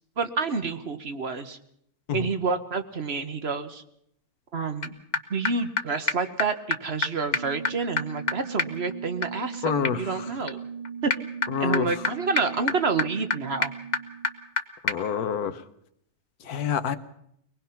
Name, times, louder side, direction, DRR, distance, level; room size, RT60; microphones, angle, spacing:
voice 1, 0.2-1.6 2.1-3.8 4.5-4.9 5.3-10.6 11.0-11.1 11.6-13.7, right 4 dB, 45° right, 9 dB, 1.2 m, -28 dB
sound 1, 4.8-4.9 5.1-5.2 5.4-5.5 5.8-5.9 6.1-6.2 6.4-6.5 6.7-6.8 7.0-7.1 7.3-14.6 14.9-15.0, left 3 dB, 35° left, 1.0 m, -30 dB
voice 2, 9.6-10.3 11.5-11.9 14.8-15.6 16.4-17.0, left 8 dB, 85° left, 11 dB, 1.5 m, -27 dB
24.0 x 19.5 x 5.8 m, 0.73 s
omnidirectional pair, 1.6 m